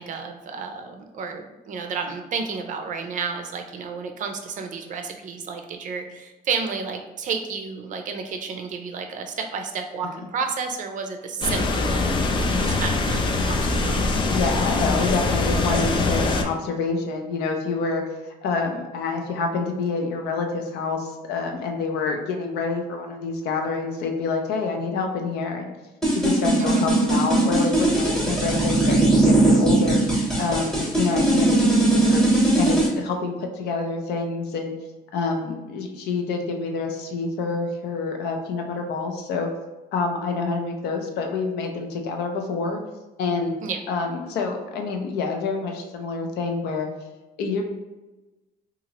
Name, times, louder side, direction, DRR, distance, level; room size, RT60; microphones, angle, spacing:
voice 1, 0.0-14.1 26.6-26.8 43.6-43.8, right 5 dB, 50° right, 5 dB, 0.5 m, -31 dB
sound 1, 11.4-16.4, left 2 dB, 30° left, 0.4 m, -23 dB
voice 2, 14.3-18.0 18.4-25.7 26.1-32.2 32.6-34.7 35.1-39.5 39.9-42.8 43.2-43.5 43.9-46.9 47.4-47.6, left 4 dB, 75° left, 3 dB, 0.6 m, -27 dB
sound 2, 26.0-32.9, right 2 dB, ahead, 1.0 m, -19 dB
2.8 x 2.4 x 2.9 m, 1.1 s
cardioid pair, 110°, 17 cm